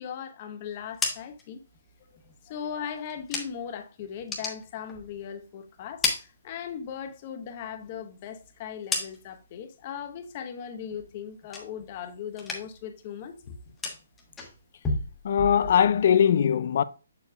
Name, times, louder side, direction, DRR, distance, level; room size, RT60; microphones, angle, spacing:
voice 1, 0.0-1.6 2.4-13.6, left 8 dB, 40° left, 1.0 m, -38 dB
sound 1, 0.7-3.8 4.1-5.4 5.7-7.1 7.4-9.5 9.9-10.4 10.7-12.0 12.3-12.9 13.2-16.0, left 3 dB, 10° left, 1.3 m, -35 dB
voice 2, 15.2-16.8, left 8 dB, 55° left, 0.4 m, -21 dB
7.0 x 6.5 x 2.3 m
hypercardioid pair, 145°, 0 cm